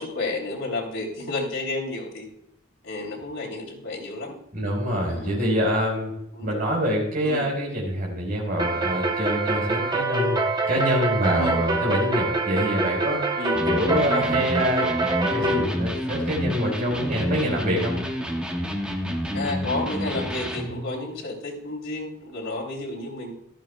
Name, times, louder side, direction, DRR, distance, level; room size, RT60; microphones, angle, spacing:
voice 1, 0.0-2.3 2.8-4.3 5.1-5.3 6.3-6.6 7.2-7.4 11.3-11.6 13.4-13.7 15.2-15.4 19.3-23.3, left 2 dB, 90° left, -1 dB, 3.0 m, -31 dB
voice 2, 4.5-6.1 6.4-10.4 10.7-13.2 13.6-14.9 15.2-18.0, equal, 45° right, -2 dB, 4.2 m, -25 dB
sound 1, 8.6-15.7, right 2 dB, 20° right, 0.8 m, -25 dB
Electric guitar, 13.5-20.8, equal, 5° right, 1.2 m, -29 dB
15.0 x 12.5 x 2.2 m, 0.79 s
head